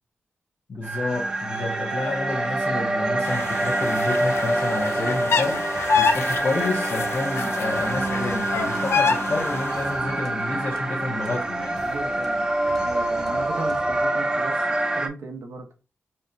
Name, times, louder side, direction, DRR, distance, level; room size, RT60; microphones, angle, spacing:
voice 1, 0.7-11.8, left 2 dB, 50° left, 0.8 m, -29 dB
sound 1, 0.8-15.1, right 2 dB, 20° right, 0.5 m, -26 dB
sound 2, 3.2-9.9, left 5 dB, 70° left, 0.4 m, -27 dB
sound 3, 5.7-14.6, equal, 10° left, 0.9 m, -47 dB
voice 2, 11.8-12.5 12.8-14.7 14.9-15.7, right 3 dB, 75° right, 0.8 m, -36 dB
5.5 x 2.2 x 2.6 m
wide cardioid pair, 95°, 5 cm